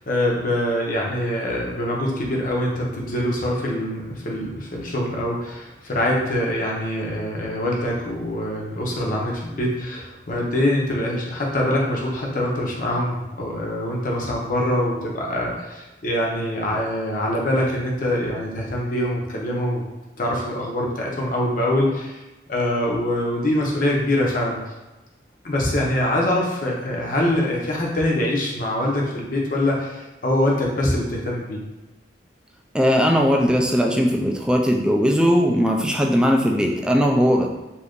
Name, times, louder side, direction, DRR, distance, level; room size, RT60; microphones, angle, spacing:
voice 1, 0.1-19.8 20.2-22.2 22.5-24.6 25.4-31.6, left 1 dB, 50° left, -2 dB, 0.7 m, -24 dB
voice 2, 32.7-37.5, equal, 5° right, 0 dB, 0.3 m, -19 dB
2.8 x 2.6 x 3.5 m, 1.1 s
head